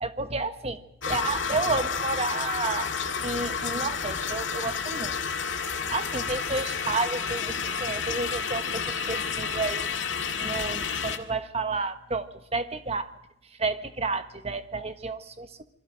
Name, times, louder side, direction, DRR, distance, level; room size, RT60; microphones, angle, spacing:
voice 1, 0.0-2.9 3.2-5.1 5.9-7.5 7.8-9.9 10.4-13.1 13.5-15.6, right 3 dB, 35° right, 9 dB, 1.3 m, -31 dB
sound 1, 1.0-11.2, left 6 dB, 75° left, 1.9 m, -30 dB
28.0 x 22.5 x 5.2 m, 0.81 s
head